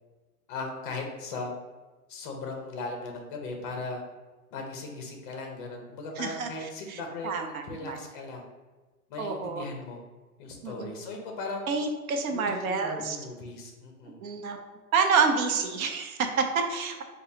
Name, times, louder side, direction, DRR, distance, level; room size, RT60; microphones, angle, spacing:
voice 1, 0.5-1.6 2.1-4.0 4.5-8.4 9.1-10.0 10.4-11.8 12.3-14.2, left 3 dB, 35° left, 2 dB, 0.7 m, -38 dB
voice 2, 6.2-6.5 6.9-8.0 9.2-9.6 10.6-11.1 11.7-13.2 14.2-14.6 14.9-17.0, right 5 dB, 65° right, 5 dB, 0.7 m, -28 dB
4.8 x 2.3 x 2.7 m, 1.3 s
hypercardioid pair, 155°, 45 cm